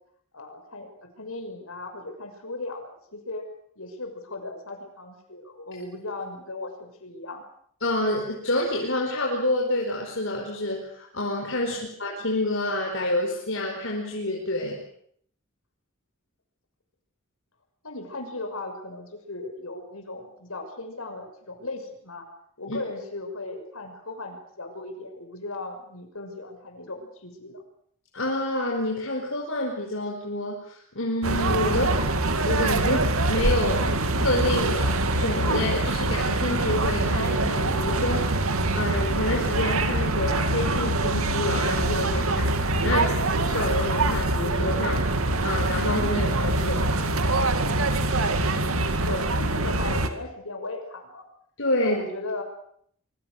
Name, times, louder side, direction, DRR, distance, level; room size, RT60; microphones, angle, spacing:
voice 1, 0.3-0.9 1.2-3.5 3.8-7.4 11.7-11.9 17.8-22.3 22.6-27.6 31.7-32.0 42.8-43.2 48.5-51.3 51.8-52.4, left 2 dB, 85° left, 5 dB, 6.2 m, -37 dB
voice 2, 7.8-14.8 22.7-22.8 28.1-31.9 32.3-38.3 38.7-43.0 43.5-46.9 51.6-52.0, left 1 dB, 65° left, -1 dB, 4.8 m, -28 dB
sound 1, 31.2-50.1, right 2 dB, 85° right, 2.4 m, -24 dB
25.5 x 24.0 x 6.6 m, 0.65 s
head